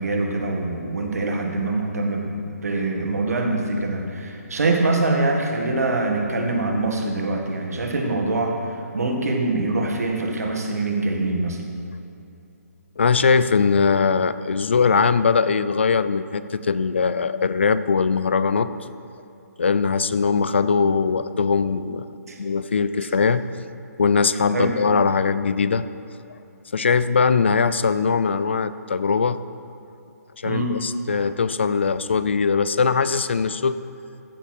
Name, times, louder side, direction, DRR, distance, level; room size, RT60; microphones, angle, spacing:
voice 1, 0.0-11.6 22.3-22.4 24.5-24.7 30.4-30.8, right 2 dB, 65° right, 2 dB, 1.8 m, -24 dB
voice 2, 13.0-18.7 19.6-22.1 22.4-23.4 24.0-25.8 26.7-29.4 30.4-33.8, left 5 dB, 45° left, 14 dB, 0.4 m, -21 dB
15.0 x 7.1 x 4.4 m, 2.7 s
hypercardioid pair, 180°, 9 cm